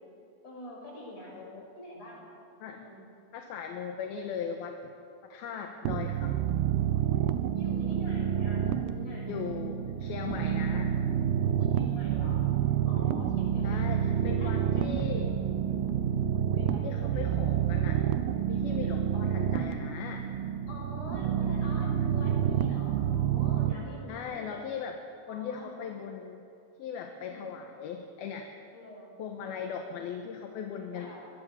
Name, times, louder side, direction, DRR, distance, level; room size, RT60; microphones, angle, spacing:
voice 1, 0.4-1.4 1.8-2.3 2.6-3.0 7.5-9.5 11.7-12.4 12.8-13.8 14.4-16.3 16.6-17.8 20.7-24.5 25.3-25.7 27.2-27.5 28.7-29.1 30.9-31.3, left 1 dB, 40° left, -2 dB, 7.7 m, -46 dB
voice 2, 1.3-1.7 2.6-2.8 3.3-4.9 5.2-6.4 9.3-11.0 13.6-15.3 16.8-18.1 18.5-20.3 24.1-25.0 25.3-26.4 26.8-28.5 29.2-31.1, left 7 dB, 70° left, 4 dB, 2.9 m, -38 dB
sound 1, 5.9-23.7, right 9 dB, 75° right, 2.7 m, -28 dB
24.0 x 21.0 x 7.2 m, 2.6 s
omnidirectional pair, 4.9 m